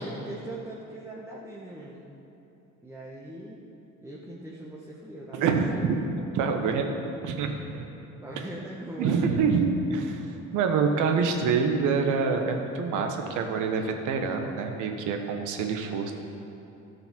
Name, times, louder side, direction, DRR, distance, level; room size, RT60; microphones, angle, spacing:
voice 1, 0.0-2.1 2.8-3.6 4.0-5.7 8.2-9.2, right 1 dB, 10° right, -5 dB, 1.4 m, -40 dB
voice 2, 5.3-6.0 6.3-6.9 7.2-7.9 9.0-16.1, right 5 dB, 80° right, 4 dB, 1.2 m, -26 dB
13.0 x 5.7 x 6.0 m, 2.9 s
supercardioid pair, 85°, 30 cm